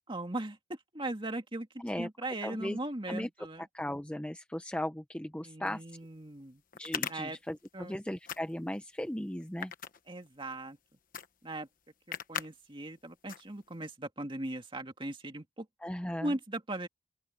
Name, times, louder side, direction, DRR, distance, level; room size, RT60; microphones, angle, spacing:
voice 1, 0.1-3.7 5.4-6.6 7.1-7.4 7.7-8.0 10.1-10.8 11.4-11.7 12.1-15.7 16.2-16.9, right 1 dB, 25° right, 2.1 m, -39 dB
voice 2, 2.4-2.8 3.1-3.3 3.7-5.8 6.8-9.7 15.8-16.3, left 1 dB, 5° left, 0.6 m, -37 dB
sound 1, 5.7-5.8 6.7-7.9 8.2-8.8 9.4-10.6 11.1-11.3 11.6-11.7 12.1-12.5 12.9-13.0 13.3-13.8, left 8 dB, 45° left, 1.2 m, -38 dB
open air
head